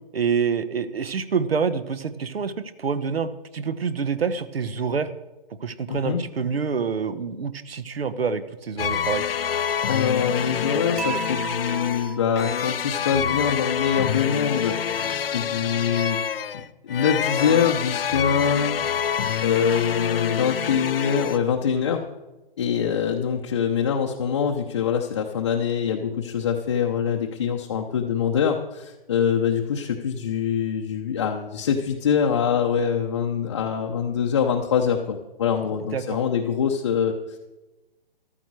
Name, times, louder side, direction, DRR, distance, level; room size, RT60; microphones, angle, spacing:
voice 1, 0.1-5.1 5.6-9.2 35.9-36.2, right 6 dB, 75° right, 14 dB, 1.2 m, -27 dB
voice 2, 5.9-6.2 9.9-16.2 16.5-18.9 19.4-22.0 22.6-37.4, left 7 dB, 30° left, 1 dB, 0.7 m, -24 dB
sound 1, 8.8-21.4, left 8 dB, 70° left, 0.7 m, -27 dB
Dishes pots and pans / Chink clink, 11.0-13.1, right 5 dB, 40° right, 1.3 m, -35 dB
14.0 x 12.5 x 4.7 m, 1.1 s
hypercardioid pair, 165°, 30 cm